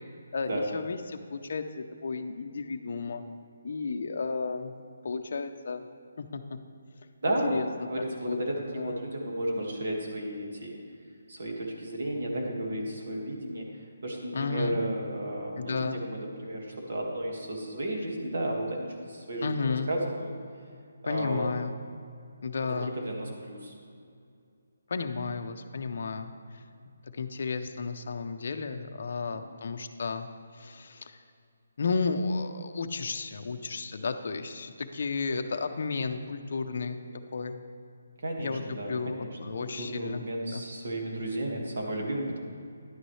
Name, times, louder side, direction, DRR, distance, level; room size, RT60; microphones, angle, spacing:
voice 1, 0.3-3.2 3.6-4.7 5.0-5.8 6.2-6.4 7.4-7.9 8.3-8.4 8.7-9.0 14.3-14.8 15.6-16.0 19.4-19.9 21.0-21.8 22.4-22.9 24.9-26.6 27.1-30.3 30.5-31.2 31.8-37.0 37.3-37.6 38.4-40.2 40.5-40.6, left 4 dB, 50° left, 6 dB, 0.6 m, -33 dB
voice 2, 7.2-7.6 7.9-10.8 11.3-13.7 14.0-20.3 21.0-21.5 22.8-23.7 29.3-29.4 38.2-39.4 39.8-42.4, right 1 dB, 55° right, 0 dB, 1.8 m, -33 dB
11.0 x 9.2 x 3.2 m, 2.4 s
hypercardioid pair, 175°, 0 cm